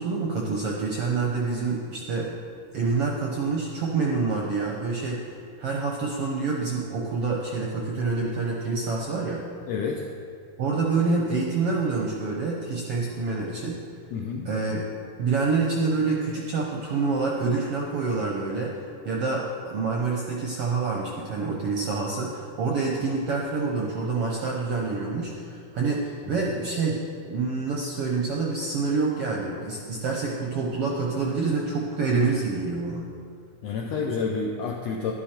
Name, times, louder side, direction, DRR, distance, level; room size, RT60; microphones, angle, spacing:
voice 1, 0.0-2.4 2.7-5.3 5.6-9.4 10.6-13.8 14.5-14.8 15.2-18.7 19.0-27.0 27.2-33.0, right 4 dB, 65° right, -1 dB, 1.5 m, -27 dB
voice 2, 9.7-10.1 14.1-14.5 33.6-35.1, left 5 dB, 75° left, 0 dB, 1.5 m, -29 dB
11.5 x 11.5 x 4.4 m, 2.3 s
omnidirectional pair, 3.8 m